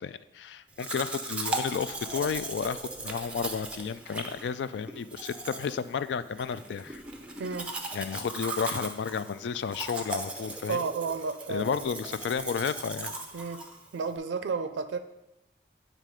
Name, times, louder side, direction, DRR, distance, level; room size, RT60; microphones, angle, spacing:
voice 1, 0.0-7.0 7.9-10.8 11.5-13.1, left 6 dB, 80° left, 14 dB, 0.3 m, -32 dB
Domestic sounds home sounds, 0.8-14.2, right 2 dB, 5° right, 0.5 m, -38 dB
voice 2, 7.4-7.7 10.7-11.9 13.3-13.6 13.9-15.0, right 4 dB, 90° right, 10 dB, 0.4 m, -32 dB
9.0 x 3.3 x 4.9 m, 0.93 s
head